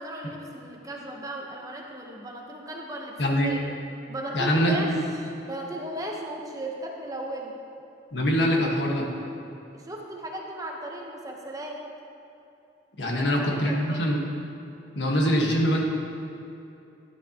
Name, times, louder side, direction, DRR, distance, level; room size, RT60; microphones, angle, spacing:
voice 1, 0.0-3.6 4.1-4.9 5.2-7.5 9.7-11.8 13.0-13.2 13.5-14.0, right 1 dB, 20° right, 0 dB, 1.0 m, -36 dB
voice 2, 3.2-3.5 4.3-5.0 8.1-9.1 13.0-14.2 14.9-15.8, equal, 75° left, -1 dB, 1.5 m, -23 dB
13.0 x 10.5 x 2.9 m, 2.7 s
head